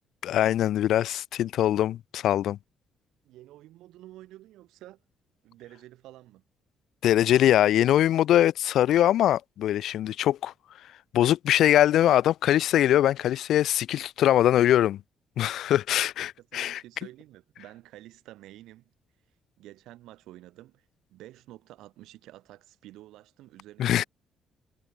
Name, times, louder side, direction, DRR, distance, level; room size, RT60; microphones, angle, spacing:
voice 1, 0.2-2.6 7.0-10.5 11.1-15.0 15.4-16.8 23.8-24.0, left 12 dB, 75° left, 0.4 m, -22 dB
voice 2, 3.2-5.0 5.4-6.4 16.4-18.9 19.6-24.1, right 15 dB, 90° right, 3.3 m, -49 dB
cardioid pair, 90°, 0 cm